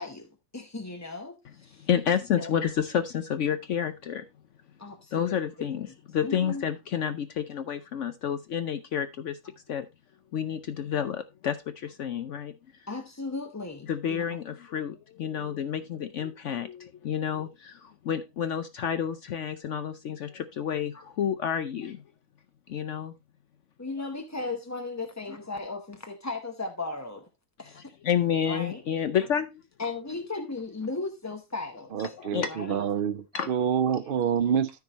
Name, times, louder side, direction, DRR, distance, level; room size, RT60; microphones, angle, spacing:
voice 1, 0.0-1.9 2.4-2.6 4.8-5.8 6.2-6.6 12.9-14.2 23.8-27.2 27.6-27.8 28.5-28.8 29.8-31.9 32.5-32.8, left 3 dB, 15° left, 0.6 m, -36 dB
voice 2, 1.8-4.2 5.1-9.4 9.7-9.9 10.3-12.9 13.8-22.0 22.7-23.1 24.0-24.1 27.7-29.6 32.1-32.5 33.3-33.5, left 8 dB, 65° left, 1.0 m, -30 dB
voice 3, 31.9-34.7, right 8 dB, 60° right, 0.6 m, -27 dB
13.5 x 4.8 x 4.0 m
omnidirectional pair, 1.4 m